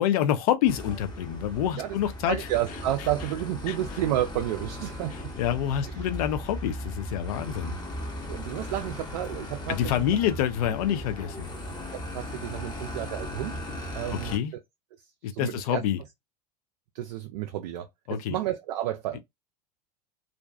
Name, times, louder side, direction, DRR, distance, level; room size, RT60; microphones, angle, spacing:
voice 1, 0.0-2.5 3.7-3.8 5.4-7.8 9.7-11.5 14.1-14.5 15.2-16.0 18.1-18.4 19.1-19.2, left 10 dB, 60° left, 0.5 m, -27 dB
sound 1, 0.7-14.4, left 1 dB, 20° left, 0.8 m, -37 dB
voice 2, 2.3-5.3 8.3-10.2 11.9-13.6 13.9-14.4 15.3-15.8 16.9-19.2, right 13 dB, 60° right, 0.4 m, -31 dB
2.5 x 2.2 x 2.2 m
figure-of-eight pair, 80°, 21 cm